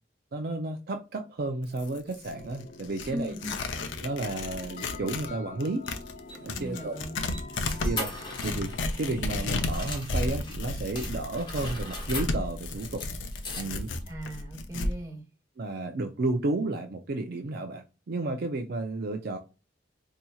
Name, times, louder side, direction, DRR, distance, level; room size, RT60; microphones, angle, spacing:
voice 1, 0.3-3.3 4.0-5.9 6.4-6.9 7.8-13.0 13.6-13.9 15.6-19.4, right 2 dB, 55° right, 0.5 m, -32 dB
Tearing, 1.6-5.3 5.6-14.9, left 2 dB, 85° left, 0.6 m, -33 dB
sound 1, 2.3-8.9, left 3 dB, 45° left, 0.7 m, -46 dB
voice 2, 3.1-3.6 6.6-7.5 14.1-15.2, equal, 20° right, 1.6 m, -38 dB
sound 2, 5.8-10.6 11.0-14.0, left 2 dB, 25° left, 1.1 m, -41 dB
4.3 x 2.7 x 2.3 m
head